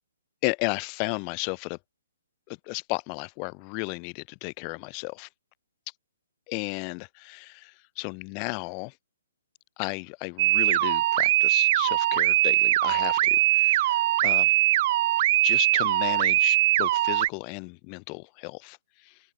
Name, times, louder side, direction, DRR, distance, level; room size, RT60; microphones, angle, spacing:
voice 1, 0.4-1.8 2.5-5.3 6.5-8.9 9.8-14.5 15.4-19.2, left 40 dB or more, 30° left, 2.1 m, -34 dB
sound 1, 10.4-17.3, right 15 dB, 40° right, 0.9 m, -22 dB
open air
hypercardioid pair, 150°, 0 cm